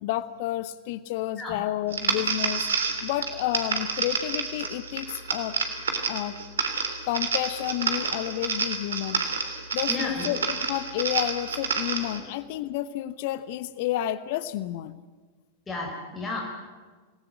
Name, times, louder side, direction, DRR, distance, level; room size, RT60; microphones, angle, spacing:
voice 1, 0.0-2.7 3.0-5.6 6.1-6.4 7.0-9.2 9.7-15.0, left 13 dB, 50° left, 15 dB, 1.0 m, -30 dB
sound 1, 1.9-12.2, right 5 dB, 65° right, 3.3 m, -29 dB
voice 2, 9.9-10.3 15.7-16.4, left 3 dB, 15° left, -1 dB, 5.0 m, -32 dB
28.0 x 19.5 x 7.8 m, 1.4 s
figure-of-eight pair, 90°, 0 cm